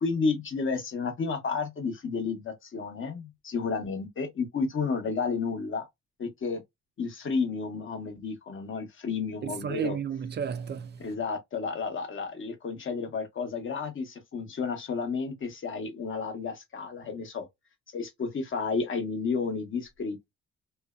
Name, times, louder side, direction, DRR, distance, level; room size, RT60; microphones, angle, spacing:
voice 1, 0.0-5.9 6.2-6.6 7.0-10.0 11.0-17.5 17.9-20.3, left 4 dB, 40° left, 0.9 m, -31 dB
voice 2, 9.4-11.0, right 7 dB, 35° right, 0.4 m, -32 dB
2.6 x 2.1 x 2.3 m
cardioid pair, 90°, 30 cm